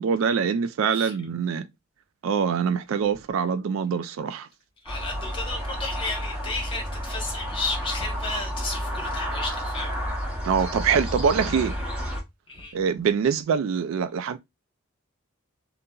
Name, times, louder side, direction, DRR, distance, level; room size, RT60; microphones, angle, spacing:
voice 1, 0.0-1.7 2.2-4.5 10.4-11.8 12.7-14.4, right 6 dB, 70° right, 0.3 m, -24 dB
voice 2, 4.8-9.9 12.5-12.8, left 3 dB, 25° left, 0.9 m, -33 dB
sound 1, 4.9-12.2, equal, 5° right, 0.7 m, -31 dB
2.8 x 2.5 x 2.3 m
head